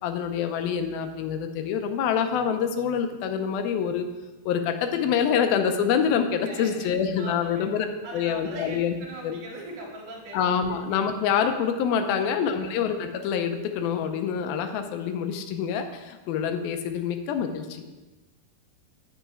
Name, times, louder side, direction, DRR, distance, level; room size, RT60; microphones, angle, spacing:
voice 1, 0.0-4.1 4.5-7.9 8.1-9.0 9.2-9.4 10.3-17.8, left 7 dB, 85° left, 7 dB, 2.5 m, -26 dB
voice 2, 6.4-6.9 7.2-7.6 8.0-10.8 12.1-12.8, right 1 dB, 80° right, -2 dB, 3.6 m, -41 dB
9.2 x 6.6 x 4.7 m, 1.2 s
omnidirectional pair, 4.2 m